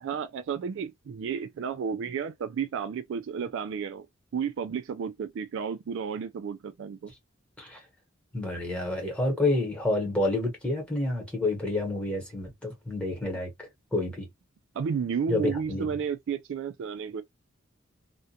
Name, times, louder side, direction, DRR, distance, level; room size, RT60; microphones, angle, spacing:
voice 1, 0.0-4.1 4.3-7.1 14.8-17.2, right 6 dB, 65° right, 0.3 m, -32 dB
voice 2, 8.3-13.5 13.9-14.3 15.3-15.9, left 2 dB, 5° left, 1.1 m, -29 dB
2.4 x 2.2 x 2.7 m
head